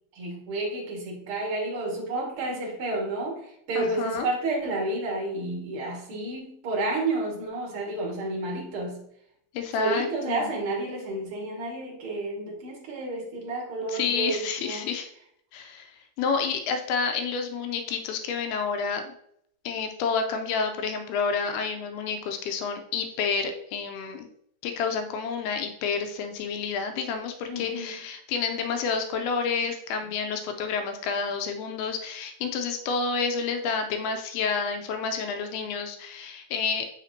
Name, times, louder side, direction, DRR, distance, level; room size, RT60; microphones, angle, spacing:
voice 1, 0.2-9.1 9.8-14.9 27.5-28.0, right 2 dB, 45° right, -2 dB, 1.9 m, -31 dB
voice 2, 3.8-4.3 9.5-10.5 13.9-15.1 15.5-19.1 19.7-24.3 24.6-36.9, left 5 dB, 80° left, 6 dB, 2.5 m, -29 dB
7.2 x 5.8 x 2.8 m, 0.70 s
omnidirectional pair, 4.6 m